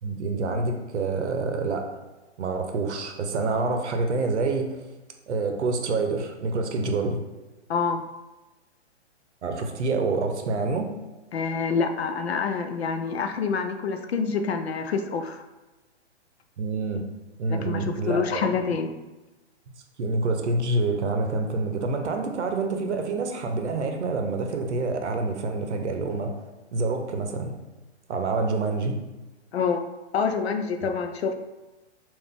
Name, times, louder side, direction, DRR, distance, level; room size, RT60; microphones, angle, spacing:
voice 1, 0.0-1.9 2.4-4.8 5.3-7.2 9.4-10.9 16.6-17.1 17.4-18.6 19.7-26.4 26.7-27.6 28.1-29.0, right 3 dB, 75° right, 5 dB, 0.7 m, -27 dB
voice 2, 7.7-8.0 11.3-15.4 17.5-18.9 29.5-29.8 30.1-31.3, left 5 dB, 65° left, 7 dB, 0.5 m, -27 dB
3.8 x 2.5 x 3.5 m, 1.1 s
hypercardioid pair, 180°, 35 cm